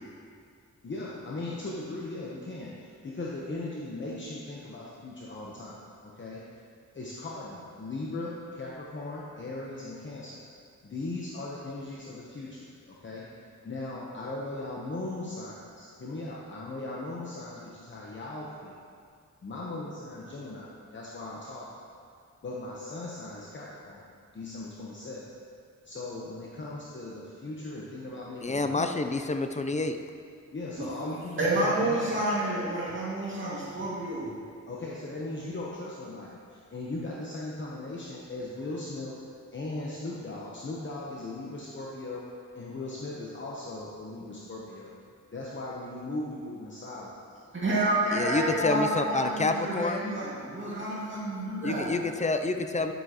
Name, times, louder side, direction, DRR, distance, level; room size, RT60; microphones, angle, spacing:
voice 1, 0.8-6.4 6.9-10.4 10.8-13.3 13.6-18.8 19.4-21.7 22.4-24.0 24.3-25.2 25.8-28.9 30.5-32.2 34.7-39.1 39.5-42.2 42.5-44.9 45.3-47.4 48.3-48.6, left 2 dB, 40° left, -4 dB, 1.0 m, -38 dB
voice 2, 28.4-30.0 48.1-50.0 51.6-52.9, left 3 dB, 25° left, 7 dB, 0.4 m, -28 dB
voice 3, 31.4-34.3 47.5-51.9, right 1 dB, 40° right, -7 dB, 2.1 m, -29 dB
10.0 x 8.1 x 3.0 m, 2.3 s
cardioid pair, 90°, 30 cm